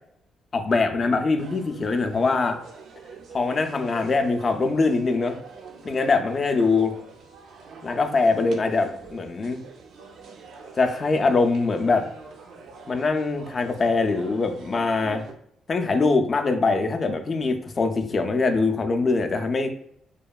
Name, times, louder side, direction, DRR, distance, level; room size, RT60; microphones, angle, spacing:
voice 1, 0.5-2.6 3.3-5.4 5.8-7.0 7.8-9.6 10.7-12.1 12.9-15.3 15.7-19.7, left 3 dB, 40° left, 6 dB, 0.3 m, -23 dB
sound 1, 1.4-15.3, right 4 dB, 75° right, 0.4 m, -45 dB
2.8 x 2.2 x 2.3 m, 0.70 s
cardioid pair, 90°, 0 cm